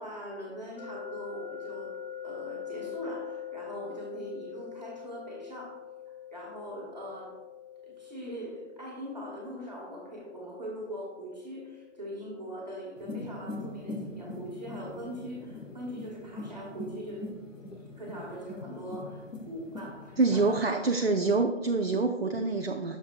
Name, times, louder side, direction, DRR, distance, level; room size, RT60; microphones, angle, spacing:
voice 1, 0.0-2.0 2.2-5.8 6.3-7.4 7.8-17.3 17.7-21.1, equal, 35° right, -3 dB, 1.9 m, -41 dB
sound 1, 0.8-13.7, left 9 dB, 40° left, 1.8 m, -44 dB
sound 2, 13.0-20.7, left 2 dB, 90° left, 1.3 m, -42 dB
voice 2, 20.2-23.0, right 3 dB, 55° right, 4 dB, 0.5 m, -26 dB
9.4 x 6.8 x 2.4 m, 1.2 s
figure-of-eight pair, 165°, 37 cm